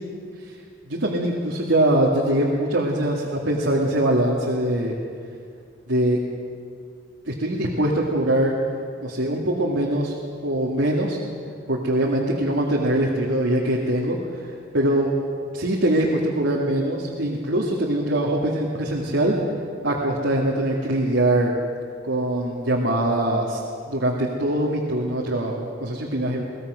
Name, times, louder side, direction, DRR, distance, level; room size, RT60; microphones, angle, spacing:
voice 1, 0.9-5.0 5.9-6.2 7.3-8.5 9.0-10.2 10.4-11.2 11.7-15.1 15.5-19.4 19.8-21.5 22.0-23.6 23.9-26.4, right 1 dB, 80° right, -2 dB, 2.2 m, -22 dB
23.0 x 18.5 x 6.4 m, 2.2 s
head